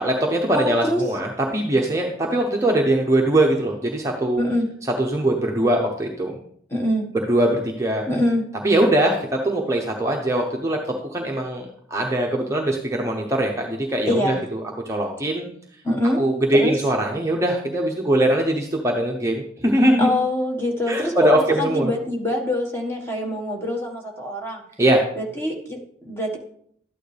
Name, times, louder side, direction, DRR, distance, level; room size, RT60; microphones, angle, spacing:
voice 1, 0.0-4.4 5.0-6.4 7.1-8.0 8.6-10.8 11.1-15.4 16.2-20.1 20.9-21.9 24.8-25.0, right 1 dB, 15° right, -1 dB, 0.8 m, -21 dB
voice 2, 0.5-1.0 4.4-4.7 6.7-7.1 8.1-8.5 14.1-14.4 15.8-16.2 16.5-16.7 20.0-24.6 25.1-26.4, left 1 dB, 15° left, 0 dB, 1.5 m, -24 dB
12.0 x 9.1 x 3.3 m, 0.66 s
head